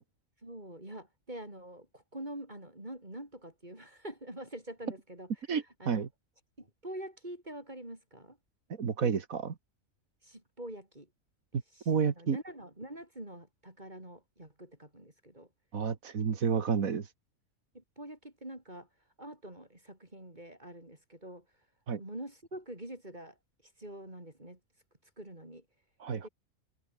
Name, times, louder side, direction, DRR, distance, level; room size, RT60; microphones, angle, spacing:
voice 1, 0.4-5.3 5.8-6.0 6.6-8.4 10.2-11.1 11.7-11.9 12.2-15.5 17.7-18.9 19.2-21.4 22.0-23.4 23.8-24.6 25.2-25.6 26.2-26.3, right 1 dB, 35° right, 5.8 m, -45 dB
voice 2, 5.5-6.1 8.8-9.5 11.9-12.4 15.7-17.1 21.9-22.0 26.0-26.3, right 6 dB, 90° right, 2.1 m, -30 dB
omnidirectional pair, 1.4 m